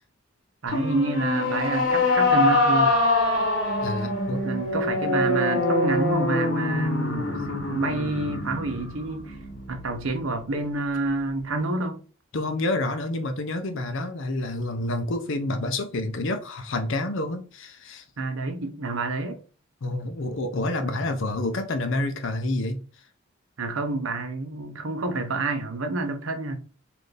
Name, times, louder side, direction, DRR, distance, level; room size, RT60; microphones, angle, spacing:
voice 1, 0.6-3.0 4.4-9.4 9.7-12.0 18.2-19.4 20.8-21.1 23.6-26.6, right 2 dB, 75° right, 0.8 m, -28 dB
sound 1, 0.7-10.1, left 2 dB, 90° left, 1.4 m, -24 dB
voice 2, 3.8-4.4 12.3-18.0 19.8-22.8, left 2 dB, 65° left, 0.6 m, -28 dB
4.2 x 2.6 x 3.2 m
head